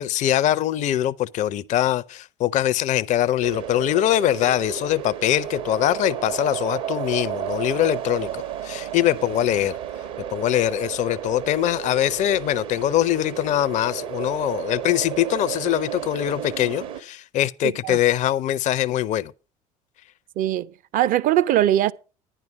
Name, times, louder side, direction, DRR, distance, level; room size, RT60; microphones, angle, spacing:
voice 1, 0.0-9.8 10.3-19.3, left 12 dB, 40° left, 0.5 m, -23 dB
sound 1, 3.4-17.0, right 10 dB, 65° right, 1.3 m, -32 dB
voice 2, 17.6-18.0 20.4-21.9, right 12 dB, 45° right, 0.6 m, -21 dB
10.5 x 10.0 x 5.1 m
figure-of-eight pair, 60°, 19 cm